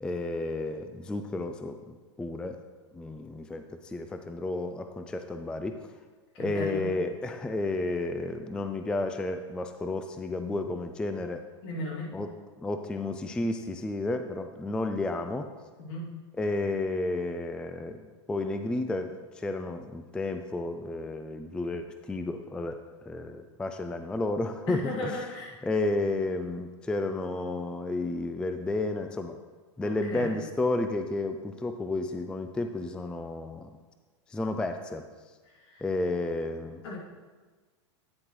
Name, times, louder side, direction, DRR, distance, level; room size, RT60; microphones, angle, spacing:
voice 1, 0.0-2.6 2.9-5.9 6.4-11.4 12.1-12.3 12.6-15.5 16.4-18.0 18.3-22.8 23.1-25.2 25.6-29.4 29.8-33.7 34.3-35.0 35.8-36.8, left 2 dB, 5° left, 7 dB, 0.3 m, -32 dB
voice 2, 6.3-6.9 11.6-12.1 15.8-16.0 24.7-25.6 29.8-30.4 35.6-35.8 36.8-37.0, left 2 dB, 65° left, -4 dB, 2.8 m, -36 dB
9.6 x 7.5 x 3.1 m, 1.4 s
hypercardioid pair, 120°, 15 cm